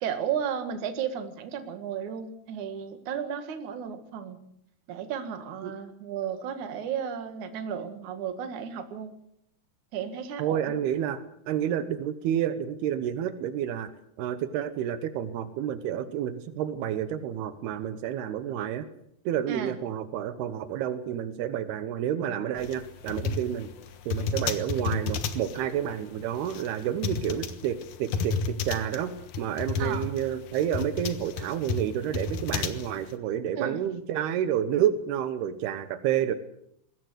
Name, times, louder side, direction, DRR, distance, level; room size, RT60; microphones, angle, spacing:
voice 1, 0.0-4.4 4.9-9.1 9.9-10.8 19.5-19.8 29.8-30.1 33.6-33.9, right 8 dB, 55° right, 8 dB, 3.0 m, -34 dB
voice 2, 10.4-13.9 14.2-18.9 19.3-23.7 24.1-29.1 29.4-36.3, right 10 dB, 80° right, 12 dB, 3.0 m, -29 dB
sound 1, 22.6-33.1, left 5 dB, 60° left, 2.4 m, -32 dB
21.0 x 17.5 x 8.1 m, 0.72 s
omnidirectional pair, 4.5 m